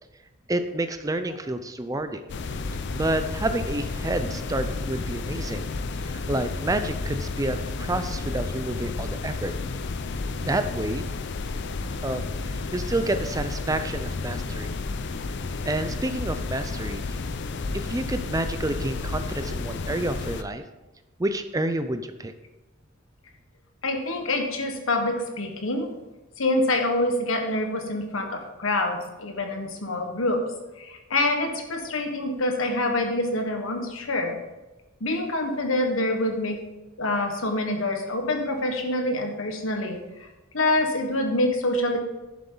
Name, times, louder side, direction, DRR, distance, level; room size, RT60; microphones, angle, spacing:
voice 1, 0.5-2.2 2.9-5.6 6.0-9.5 10.4-11.0 12.0-14.8 15.6-17.2 17.7-20.6 21.2-22.3, right 1 dB, 15° right, 9 dB, 0.5 m, -29 dB
sound 1, 2.3-20.4, left 3 dB, 60° left, 0.5 m, -31 dB
voice 2, 23.8-25.9 26.4-30.4 30.8-34.4 35.0-36.6 37.0-40.0 40.5-42.0, left 1 dB, 80° left, 4 dB, 1.4 m, -26 dB
11.0 x 7.3 x 3.9 m, 1.1 s
head